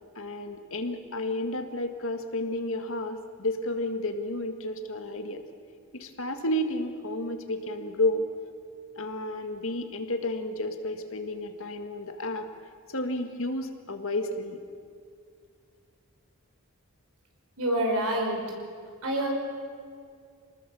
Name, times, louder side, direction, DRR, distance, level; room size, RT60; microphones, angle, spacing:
voice 1, 0.2-5.4 5.9-8.3 9.0-12.5 12.9-14.6, left 1 dB, 65° left, 6 dB, 1.9 m, -31 dB
voice 2, 17.6-18.4 19.0-19.3, right 1 dB, 85° right, 1 dB, 5.3 m, -26 dB
27.5 x 20.0 x 7.1 m, 2.2 s
head